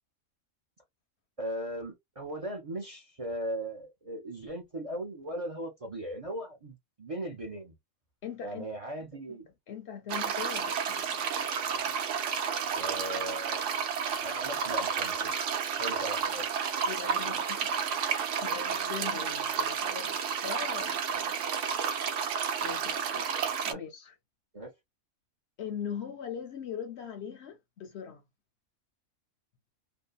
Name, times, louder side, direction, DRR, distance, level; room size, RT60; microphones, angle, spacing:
voice 1, 1.4-7.7 8.4-9.5 12.7-13.6 14.2-15.3 15.8-16.5 23.7-23.8 24.5-24.7, right 1 dB, 35° right, 0.6 m, -38 dB
voice 2, 8.2-8.7 9.3-9.4 9.7-11.3 16.9-17.8 18.1-21.4 22.6-23.3 23.6-24.1 25.6-28.2, left 8 dB, 65° left, 0.7 m, -41 dB
sound 1, 10.1-23.7, right 6 dB, 65° right, 0.9 m, -31 dB
2.7 x 2.1 x 2.2 m
omnidirectional pair, 1.4 m